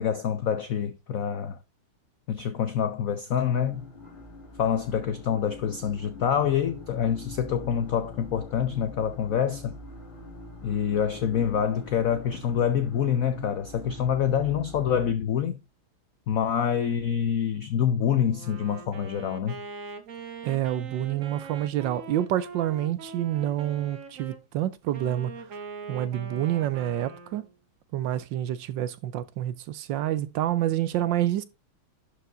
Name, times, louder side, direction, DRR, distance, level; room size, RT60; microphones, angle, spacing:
voice 1, 0.0-1.6 2.3-3.9 4.6-9.8 10.6-15.6 16.3-19.6, left 8 dB, 75° left, 0.7 m, -26 dB
sound 1, 3.2-15.1, left 1 dB, 25° left, 2.3 m, -44 dB
Wind instrument woodwind instrument, 18.3-24.4 24.9-27.6, right 4 dB, 45° right, 1.3 m, -42 dB
voice 2, 20.4-25.5 25.9-27.4 27.9-31.4, right 12 dB, 75° right, 1.2 m, -28 dB
11.5 x 4.9 x 3.8 m
omnidirectional pair, 2.3 m